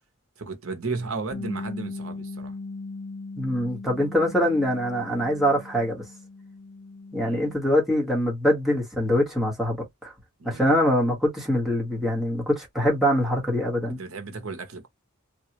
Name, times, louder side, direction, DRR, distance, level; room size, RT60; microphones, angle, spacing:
voice 1, 0.4-2.5 7.2-7.5 10.4-10.7 13.9-14.9, right 4 dB, 65° right, 0.8 m, -34 dB
Bass guitar, 1.3-7.6, left 3 dB, 80° left, 0.6 m, -38 dB
voice 2, 3.4-6.0 7.1-10.1 10.4-14.0, equal, ahead, 1.3 m, -24 dB
3.3 x 2.3 x 2.9 m
head